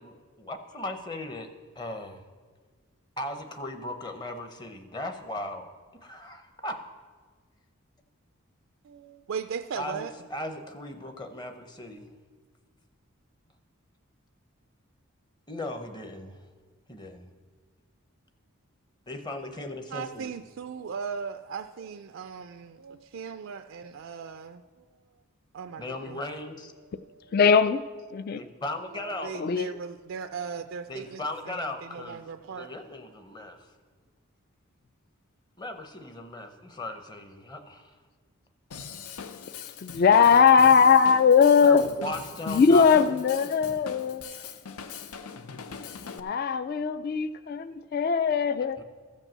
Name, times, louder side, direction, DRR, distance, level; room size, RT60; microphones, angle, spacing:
voice 1, 0.0-1.5 1.8-2.2 3.2-5.7 6.0-6.8 9.8-12.1 15.5-16.3 16.9-17.3 19.1-20.3 25.8-26.7 28.3-29.3 30.9-32.3 32.5-33.6 35.6-37.9 41.6-43.2 43.4-43.8 48.8-48.9, left 2 dB, 20° left, 0.7 m, -37 dB
voice 2, 8.8-10.1 19.9-24.8 25.5-26.2 26.8-27.4 28.9-32.8, right 6 dB, 60° right, 0.3 m, -38 dB
voice 3, 27.3-27.8 28.1-28.4 29.3-29.7 39.8-41.9 42.5-44.4 46.1-48.8, left 6 dB, 45° left, 0.3 m, -20 dB
Drum kit / Drum, 38.7-46.2, left 6 dB, 90° left, 0.6 m, -42 dB
14.5 x 5.4 x 7.4 m
head